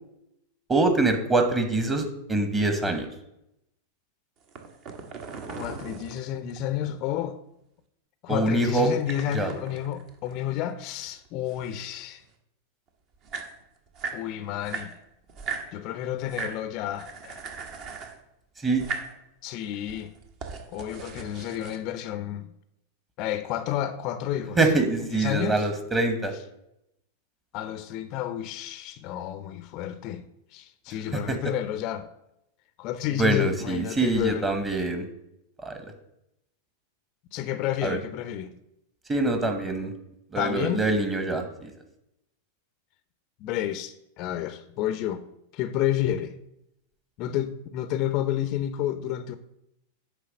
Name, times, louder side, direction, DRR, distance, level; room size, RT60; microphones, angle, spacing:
voice 1, 0.7-3.1 8.3-8.9 9.3-9.5 18.6-18.8 24.6-26.3 31.3-31.4 33.2-35.0 35.6-35.8 37.8-38.0 39.1-39.9 40.3-41.7, right 2 dB, 15° right, 1.3 m, -24 dB
sound 1, 4.4-6.9 8.7-10.8 11.1-12.3 12.9-13.0 13.1-14.2 14.6-15.7 16.2-16.6 16.9-18.2 18.7-19.1 19.7-21.8, right 5 dB, 40° right, 1.1 m, -38 dB
voice 2, 5.5-7.4 8.2-12.2 14.1-14.9 15.7-17.4 19.4-20.1 20.7-22.5 23.2-24.6 25.0-25.7 27.5-30.2 30.5-32.0 32.8-34.5 37.3-38.5 40.4-40.8 43.4-45.2 45.5-46.3 47.2-49.3, left 11 dB, 45° left, 0.5 m, -30 dB
9.5 x 3.4 x 6.3 m
figure-of-eight pair, 90°, 0 cm